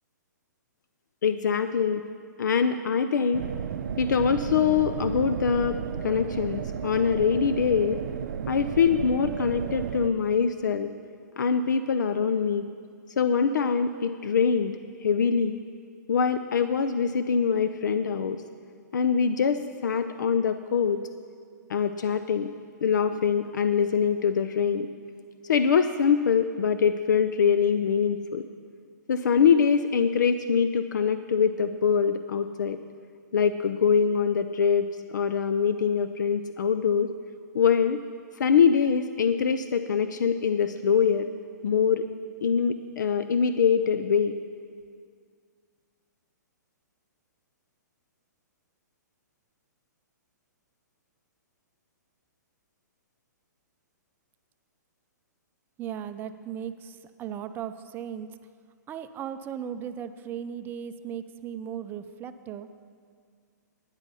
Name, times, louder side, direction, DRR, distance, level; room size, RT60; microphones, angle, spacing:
voice 1, 1.2-2.0 2.4-3.5 4.0-8.0 8.5-10.9 11.4-12.7 13.2-15.6 16.1-18.4 18.9-21.0 21.7-22.5 22.8-24.9 25.4-28.4 29.1-32.8 33.3-37.1 37.5-38.0 38.4-41.3 41.6-42.1 42.4-44.4, left 6 dB, 75° left, 10 dB, 0.5 m, -24 dB
sound 1, 3.3-10.1, right 8 dB, 70° right, 0.5 m, -33 dB
voice 2, 55.8-58.3 58.9-62.7, right 9 dB, 20° right, 10 dB, 0.5 m, -37 dB
12.5 x 9.8 x 5.5 m, 2.1 s
hypercardioid pair, 135°, 10 cm